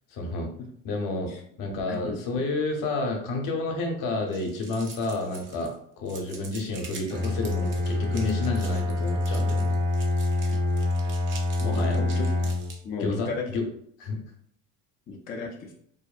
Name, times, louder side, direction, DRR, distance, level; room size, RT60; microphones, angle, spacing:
voice 1, 0.1-0.5 0.8-1.3 1.6-9.8 11.6-12.0 13.0-13.6 14.0-14.2, left 2 dB, 60° left, 2 dB, 0.8 m, -30 dB
sound 1, 4.3-5.7 6.1-12.8, right 4 dB, 35° right, 0.6 m, -46 dB
Bowed string instrument, 7.1-12.8, left 2 dB, 70° right, 1.3 m, -26 dB
voice 2, 11.6-12.5 12.8-13.4 15.1-15.7, left 4 dB, 25° left, -1 dB, 0.3 m, -35 dB
2.7 x 2.0 x 2.4 m, 0.66 s
supercardioid pair, 105°, 36 cm